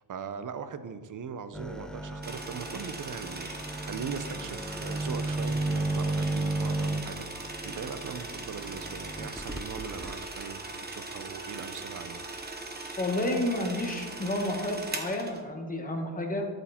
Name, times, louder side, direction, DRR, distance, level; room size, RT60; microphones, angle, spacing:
voice 1, 0.1-12.3, right 6 dB, 40° right, 12 dB, 0.7 m, -40 dB
sound 1, 1.5-10.1, right 2 dB, ahead, 0.4 m, -34 dB
sound 2, 2.2-15.4, right 2 dB, 20° right, 1.2 m, -40 dB
voice 2, 13.0-16.5, left 1 dB, 15° left, 1 dB, 1.7 m, -30 dB
11.5 x 8.1 x 4.4 m, 1.5 s
cardioid pair, 125°, 46 cm